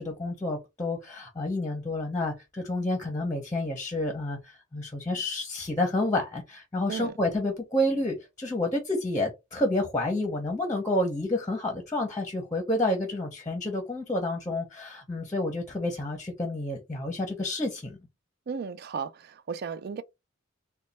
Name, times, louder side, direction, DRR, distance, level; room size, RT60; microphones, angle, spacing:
voice 1, 0.0-18.0, left 1 dB, 15° left, 0.7 m, -29 dB
voice 2, 18.5-20.0, right 6 dB, 50° right, 0.4 m, -35 dB
3.2 x 2.2 x 4.0 m
head